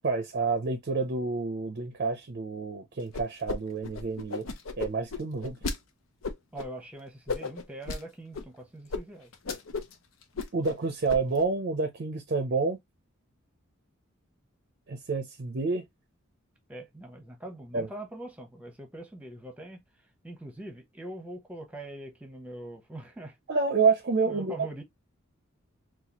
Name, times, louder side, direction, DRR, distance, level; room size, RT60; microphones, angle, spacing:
voice 1, 0.0-4.5 4.8-5.6 10.5-12.8 14.9-15.8 17.7-17.9 23.5-24.5, right 4 dB, 50° right, 0.5 m, -28 dB
sound 1, 3.1-3.6 3.8-5.8 6.2-6.7 7.3-8.0 8.3-8.5 8.9-9.0 9.3-9.9 10.2-10.8 11.1-11.4, left 4 dB, 80° left, 0.7 m, -34 dB
voice 2, 6.5-9.3 16.7-19.8 20.2-23.4 24.2-24.8, right 1 dB, 5° right, 0.9 m, -42 dB
4.0 x 2.4 x 2.9 m
head